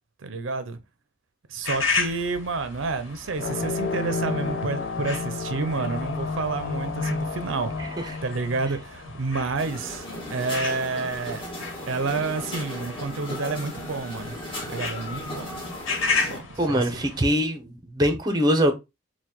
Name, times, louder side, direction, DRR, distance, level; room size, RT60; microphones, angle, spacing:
voice 1, 0.2-0.8 1.5-7.7 8.2-11.5 11.9-14.4 14.6-15.6 16.2-17.0, right 3 dB, 75° right, 0.6 m, -29 dB
sound 1, 1.6-17.2, left 4 dB, 85° left, 1.2 m, -34 dB
sound 2, 3.3-9.5, left 4 dB, 60° left, 0.7 m, -31 dB
voice 2, 7.8-8.2 16.6-18.7, equal, 20° right, 0.7 m, -23 dB
sound 3, 9.6-16.4, left 1 dB, 25° left, 1.5 m, -36 dB
4.6 x 2.3 x 3.6 m
head